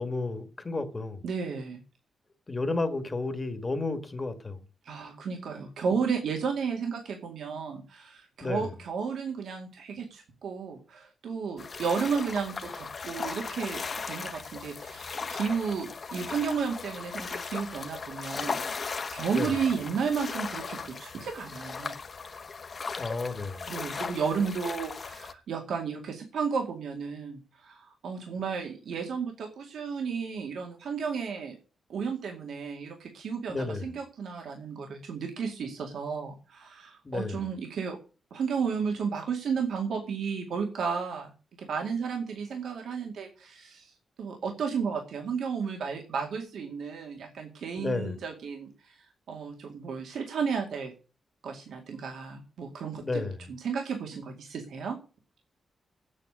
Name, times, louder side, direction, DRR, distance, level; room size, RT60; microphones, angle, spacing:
voice 1, 0.0-1.2 2.5-4.6 8.4-8.7 19.3-19.5 22.9-23.7 33.5-33.9 37.0-37.4 47.8-48.2 53.0-53.5, left 3 dB, 20° left, 1.4 m, -32 dB
voice 2, 1.2-1.8 4.8-13.8 14.1-22.0 23.7-31.6 31.9-38.0 38.3-43.9 44.2-49.0 49.3-50.9 51.4-55.0, right 6 dB, 80° right, 2.3 m, -33 dB
sound 1, 11.6-25.3, left 5 dB, 35° left, 1.0 m, -37 dB
8.8 x 8.4 x 9.3 m
wide cardioid pair, 180°, 0 cm